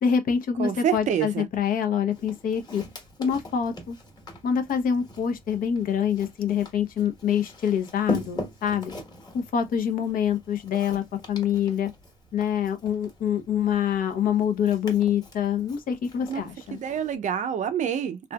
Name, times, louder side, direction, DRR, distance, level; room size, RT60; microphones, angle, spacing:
voice 1, 0.0-2.8 3.2-4.0 4.4-8.9 9.3-11.9 12.3-16.8, left 8 dB, 55° left, 0.8 m, -25 dB
voice 2, 0.6-1.5 16.3-16.4 16.7-18.3, right 8 dB, 45° right, 0.5 m, -27 dB
Walk footsteps, 2.1-17.2, left 1 dB, 25° left, 1.3 m, -41 dB
3.3 x 2.7 x 2.3 m
cardioid pair, 110°, 17 cm